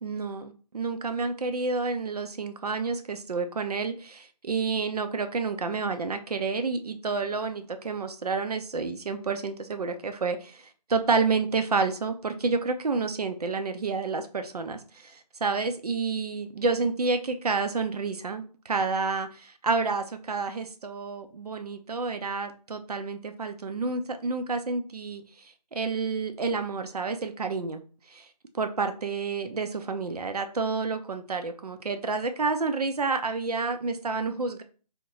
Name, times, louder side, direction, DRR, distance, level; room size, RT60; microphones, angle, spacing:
voice 1, 0.0-10.6 10.9-25.2 25.7-27.8 28.1-28.3 28.5-34.6, right 4 dB, 65° right, 7 dB, 0.5 m, -29 dB
2.8 x 2.2 x 3.6 m, 0.38 s
figure-of-eight pair, 180°, 21 cm